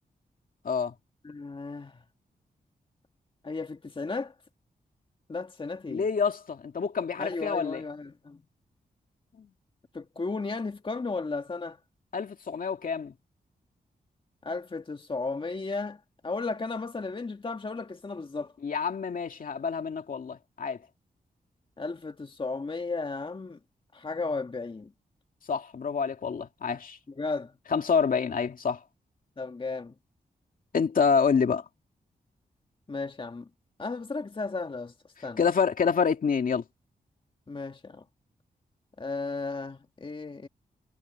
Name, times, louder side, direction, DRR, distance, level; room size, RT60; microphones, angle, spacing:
voice 1, 1.2-2.0 3.4-4.3 5.3-6.1 7.2-8.4 9.9-11.8 14.4-18.5 21.8-23.6 23.9-24.9 27.2-27.5 29.4-30.0 32.9-33.5 33.8-34.9 35.2-35.4 37.5-38.0 39.0-40.5, left 3 dB, 35° left, 1.9 m, -34 dB
voice 2, 5.9-7.8 9.4-9.5 12.1-13.1 18.6-20.8 25.5-27.0 27.7-28.8 30.7-31.6 35.4-36.6, left 6 dB, 60° left, 2.4 m, -27 dB
cardioid pair, 90°, 16 cm